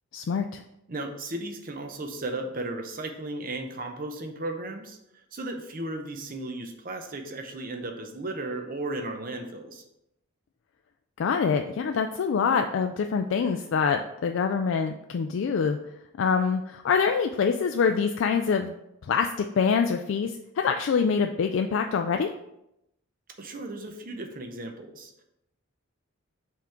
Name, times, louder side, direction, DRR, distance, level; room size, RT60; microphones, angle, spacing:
voice 1, 0.1-0.6 11.2-15.8 16.2-18.7 19.0-22.3, left 6 dB, 65° left, 5 dB, 0.3 m, -25 dB
voice 2, 0.9-5.0 5.3-9.8 23.4-25.2, right 2 dB, 45° right, 5 dB, 0.7 m, -35 dB
5.8 x 3.7 x 4.4 m, 0.83 s
head